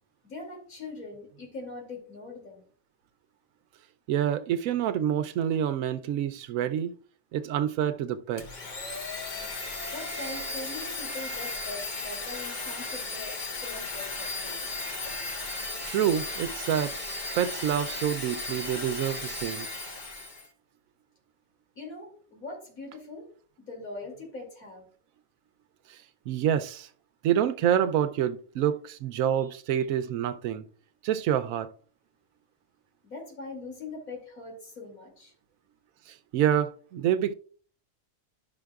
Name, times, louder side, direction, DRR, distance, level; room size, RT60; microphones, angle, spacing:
voice 1, 0.2-2.6 9.9-14.7 21.8-23.3 23.6-24.9 33.0-35.3, left 2 dB, 80° left, 3.0 m, -42 dB
voice 2, 4.1-6.9 7.3-8.5 15.9-17.0 17.3-19.7 25.9-26.0 26.3-26.9 27.2-30.6 31.0-31.7 36.1-37.3, right 10 dB, 75° right, 1.0 m, -27 dB
Domestic sounds home sounds, 8.4-20.5, left 3 dB, 40° left, 1.0 m, -35 dB
11.5 x 5.7 x 2.3 m
omnidirectional pair, 1.4 m